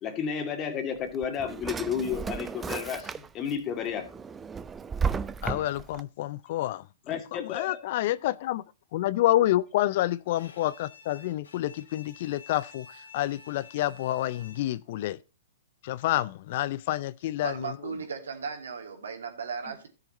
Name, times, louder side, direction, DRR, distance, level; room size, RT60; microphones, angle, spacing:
voice 1, 0.0-4.1 7.1-7.8 19.6-19.9, left 7 dB, 30° left, 2.2 m, -32 dB
Drawer open or close, 1.0-3.5 3.9-6.0, right 6 dB, 15° right, 0.4 m, -34 dB
voice 2, 5.4-8.6 8.9-15.2 15.8-17.9, left 14 dB, 50° left, 0.4 m, -28 dB
Bowed string instrument, 10.3-14.9, left 5 dB, 80° left, 2.4 m, -51 dB
voice 3, 17.4-19.9, right 6 dB, 80° right, 2.5 m, -36 dB
13.0 x 6.6 x 4.2 m
hypercardioid pair, 125°, 0 cm